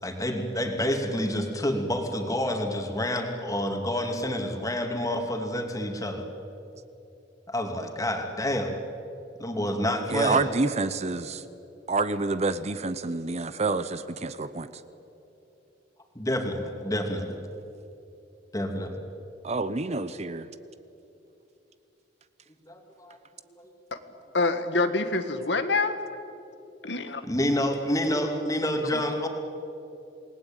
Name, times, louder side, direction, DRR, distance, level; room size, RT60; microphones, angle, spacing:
voice 1, 0.0-6.3 7.5-8.7 9.4-10.4 16.1-17.4 18.5-19.0 22.6-23.2 23.6-23.7 27.2-29.3, left 1 dB, 20° left, 3 dB, 2.8 m, -28 dB
voice 2, 10.1-11.4 11.9-14.7 19.4-20.5, right 3 dB, 40° right, 13 dB, 0.8 m, -28 dB
voice 3, 24.3-26.0 26.8-27.2, left 3 dB, 75° left, 9 dB, 1.7 m, -26 dB
28.0 x 19.5 x 9.1 m, 2.9 s
head